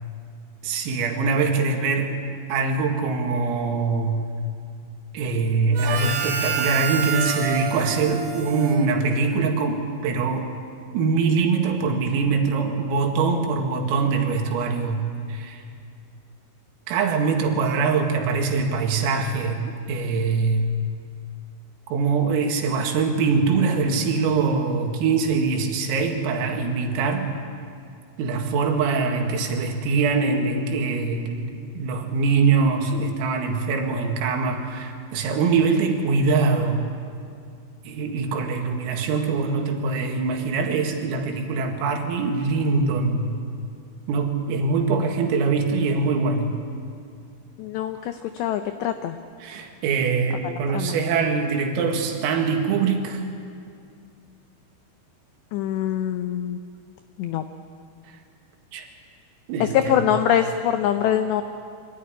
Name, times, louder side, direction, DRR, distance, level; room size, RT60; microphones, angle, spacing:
voice 1, 0.6-2.1 2.5-4.2 5.1-10.5 10.9-15.6 16.9-20.6 21.9-27.3 28.2-36.9 37.9-43.3 44.1-46.6 49.4-53.2 58.7-58.9 59.5-60.1, right 4 dB, 85° right, 3 dB, 4.6 m, -23 dB
Harmonica, 5.7-9.5, right 7 dB, 55° right, 3.2 m, -28 dB
voice 2, 47.6-49.2 50.4-51.0 55.5-56.6 57.2-57.4 59.7-61.4, left 10 dB, 85° left, 8 dB, 2.4 m, -24 dB
25.0 x 13.5 x 9.9 m, 2.3 s
omnidirectional pair, 5.9 m